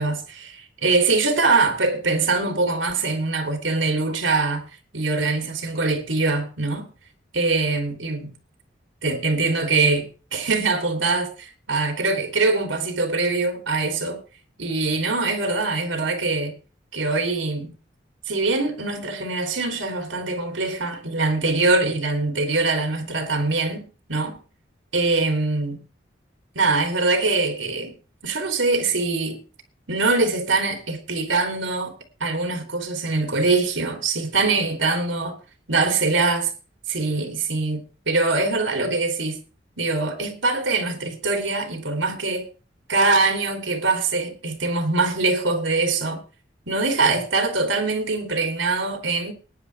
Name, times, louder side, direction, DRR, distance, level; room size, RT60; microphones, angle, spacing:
voice 1, 0.0-4.6 4.9-6.9 7.3-8.3 9.0-14.2 14.6-16.5 16.9-17.7 18.3-24.4 24.9-25.8 26.5-28.0 28.2-29.4 29.9-31.9 32.2-35.4 35.7-36.5 36.9-39.4 39.8-42.5 42.9-46.2 46.7-49.3, right 3 dB, 90° right, 3.4 m, -23 dB
20.5 x 10.0 x 3.4 m
head